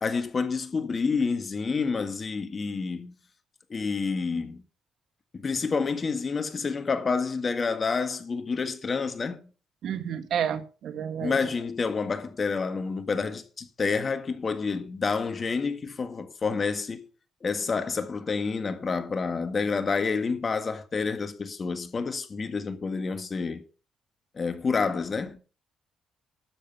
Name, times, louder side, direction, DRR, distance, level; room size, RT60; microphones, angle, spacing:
voice 1, 0.0-3.1 3.7-4.6 5.3-9.5 11.2-17.0 17.4-23.6 24.4-25.4, left 4 dB, 40° left, 1.7 m, -29 dB
voice 2, 9.8-11.4, right 8 dB, 70° right, 1.5 m, -30 dB
12.0 x 7.6 x 5.4 m
cardioid pair, 90°, 0 cm